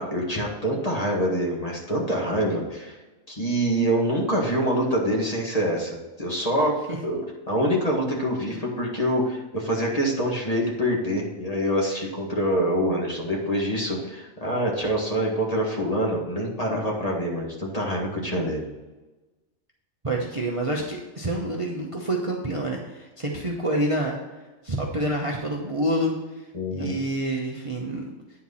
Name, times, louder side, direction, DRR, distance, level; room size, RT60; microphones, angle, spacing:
voice 1, 0.0-3.0 3.3-6.7 7.0-18.7 26.5-27.0, equal, 25° left, -2 dB, 1.9 m, -25 dB
voice 2, 20.0-24.2 24.6-26.1 26.7-28.1, right 1 dB, 25° right, -1 dB, 0.9 m, -27 dB
9.6 x 4.6 x 5.6 m, 1.2 s
omnidirectional pair, 1.4 m